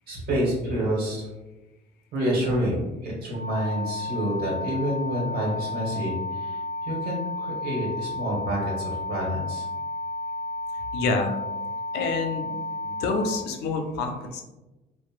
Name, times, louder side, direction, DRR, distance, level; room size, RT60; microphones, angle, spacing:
voice 1, 0.1-1.3 2.1-9.6, equal, 65° right, -3 dB, 1.1 m, -28 dB
sound 1, 3.3-13.3, left 2 dB, 35° right, 1.2 m, -32 dB
voice 2, 10.9-11.3 11.9-12.5 12.8-14.4, left 3 dB, 80° left, 4 dB, 0.5 m, -27 dB
3.0 x 2.1 x 2.4 m, 1.1 s
cardioid pair, 110°, 17 cm